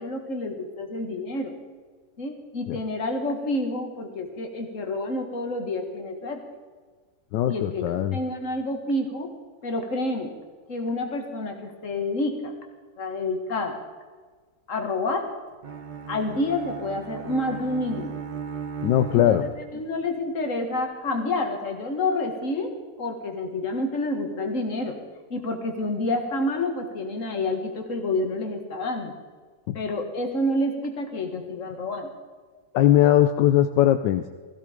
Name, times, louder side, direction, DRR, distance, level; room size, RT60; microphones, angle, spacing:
voice 1, 0.0-1.5 2.2-6.4 7.5-7.8 8.1-9.3 9.6-10.3 10.7-12.5 13.0-13.8 14.7-15.3 16.1-18.1 19.1-19.4 19.7-25.0 25.3-29.1 29.7-32.1, left 2 dB, 45° left, 4 dB, 2.1 m, -28 dB
voice 2, 7.3-8.2 18.8-19.4 29.7-29.8 32.7-34.3, left 12 dB, 80° left, 9 dB, 1.3 m, -20 dB
Bowed string instrument, 15.6-20.0, right 6 dB, 50° right, 0.5 m, -37 dB
17.0 x 15.0 x 5.1 m, 1.5 s
omnidirectional pair, 1.9 m